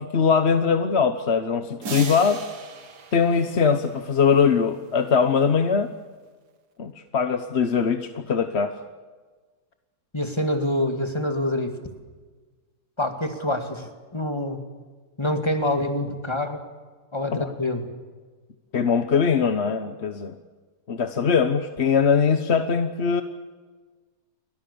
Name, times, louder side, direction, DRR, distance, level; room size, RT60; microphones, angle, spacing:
voice 1, 0.0-2.4 3.1-5.9 6.8-8.8 17.4-17.5 18.7-20.3 20.9-23.2, left 6 dB, 45° left, 9 dB, 1.2 m, -21 dB
sound 1, 1.8-4.3, right 5 dB, 90° right, 2.3 m, -37 dB
voice 2, 10.1-11.7 13.0-14.6 15.2-16.6 17.1-17.9, left 1 dB, 15° left, 6 dB, 2.3 m, -26 dB
29.5 x 23.5 x 7.0 m, 1.4 s
omnidirectional pair, 1.7 m